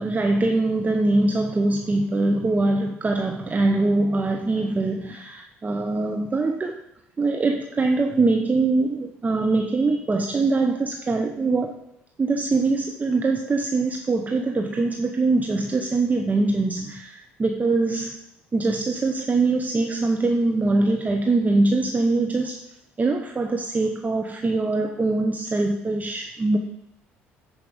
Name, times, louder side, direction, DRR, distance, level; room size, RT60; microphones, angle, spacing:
voice 1, 0.0-6.7 7.2-11.8 12.2-18.2 18.5-22.6 23.0-26.6, right 3 dB, 30° right, 4 dB, 0.8 m, -23 dB
9.7 x 5.0 x 5.1 m, 0.82 s
hypercardioid pair, 60°, 6 cm